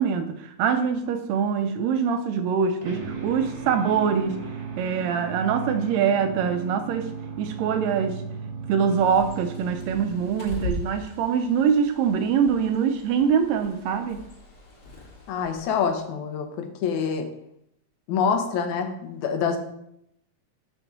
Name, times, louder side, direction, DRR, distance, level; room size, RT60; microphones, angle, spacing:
voice 1, 0.0-4.4 4.8-7.1 7.4-8.2 8.7-14.2, right 7 dB, 80° right, 8 dB, 1.7 m, -24 dB
sound 1, 2.8-11.1, right 5 dB, 35° right, 1.1 m, -36 dB
Bird, 8.9-15.9, left 1 dB, 50° left, 2.5 m, -40 dB
voice 2, 15.3-17.3 18.1-19.6, left 6 dB, 80° left, 5 dB, 2.2 m, -26 dB
6.2 x 5.8 x 3.9 m, 0.76 s
omnidirectional pair, 3.4 m